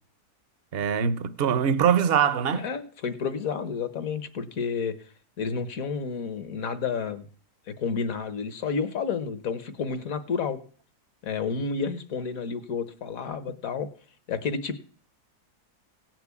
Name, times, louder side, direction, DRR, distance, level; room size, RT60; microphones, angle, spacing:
voice 1, 0.7-2.6, right 8 dB, 50° right, 0.8 m, -23 dB
voice 2, 2.5-5.1 5.4-7.3 7.7-10.6 11.2-13.9 14.3-14.8, left 5 dB, 60° left, 1.5 m, -30 dB
17.0 x 6.1 x 8.3 m
omnidirectional pair, 1.7 m